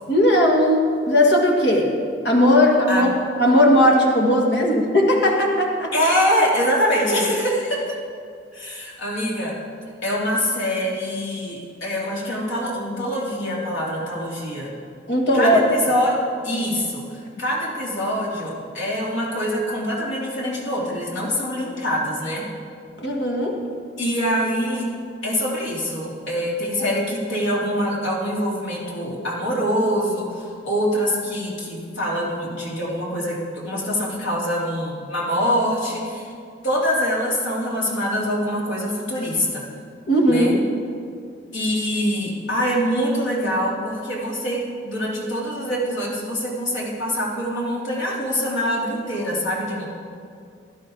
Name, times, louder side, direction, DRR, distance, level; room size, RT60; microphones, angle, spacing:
voice 1, 0.1-1.9 2.2-3.1 3.4-5.9 15.1-15.6 23.0-23.6 26.8-26.9 40.1-40.6, left 1 dB, 65° left, 0 dB, 1.8 m, -17 dB
voice 2, 5.9-8.0 8.5-9.6 10.0-14.7 15.3-22.5 24.0-24.9 25.2-36.3 36.6-39.6 40.3-40.5 41.5-49.9, equal, 85° left, -5 dB, 3.1 m, -24 dB
16.0 x 11.5 x 3.9 m, 2.3 s
head